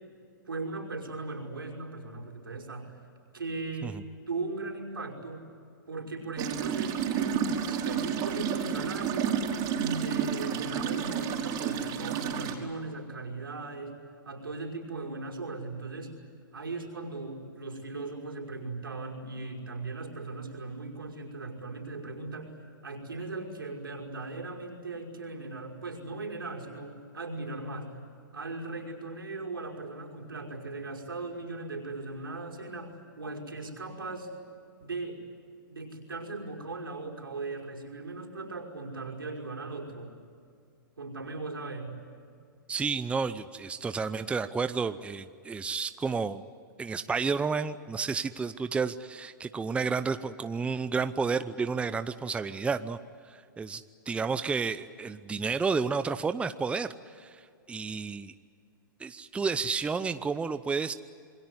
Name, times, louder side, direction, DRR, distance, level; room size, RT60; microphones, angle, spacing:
voice 1, 0.5-3.0 3.3-5.5 5.9-9.4 9.7-14.0 14.2-16.2 16.5-22.5 22.8-28.0 28.3-34.3 34.8-35.2 35.7-40.1 41.0-42.0, right 3 dB, 90° right, 1 dB, 5.5 m, -38 dB
sound 1, 6.4-12.5, right 8 dB, 35° right, 4.2 m, -30 dB
voice 2, 42.7-46.4 46.8-53.0 53.2-58.3 59.0-60.9, right 5 dB, 10° right, 11 dB, 0.7 m, -31 dB
27.5 x 22.0 x 9.8 m, 2.3 s
hypercardioid pair, 120°, 11 cm